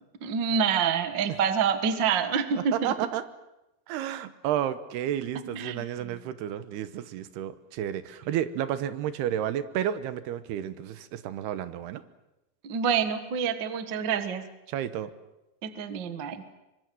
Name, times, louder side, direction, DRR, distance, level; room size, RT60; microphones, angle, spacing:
voice 1, 0.2-2.9 5.5-5.8 12.6-14.4 15.6-16.4, right 7 dB, 60° right, 9 dB, 1.1 m, -27 dB
voice 2, 2.5-3.2 3.9-12.0 14.7-15.1, right 10 dB, 80° right, 12 dB, 3.0 m, -31 dB
25.0 x 24.0 x 7.8 m, 0.96 s
omnidirectional pair, 4.8 m